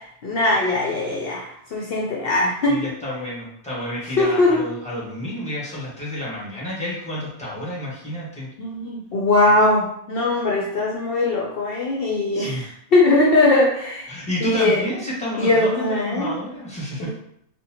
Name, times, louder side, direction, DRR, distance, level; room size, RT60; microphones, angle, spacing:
voice 1, 0.0-2.8 4.2-4.7 8.6-14.8 15.4-16.3 17.0-17.1, left 2 dB, 65° left, -2 dB, 0.7 m, -20 dB
voice 2, 2.7-8.5 12.3-12.7 14.1-17.1, left 1 dB, 5° left, -7 dB, 1.1 m, -30 dB
3.9 x 2.2 x 2.8 m, 0.72 s
omnidirectional pair, 1.2 m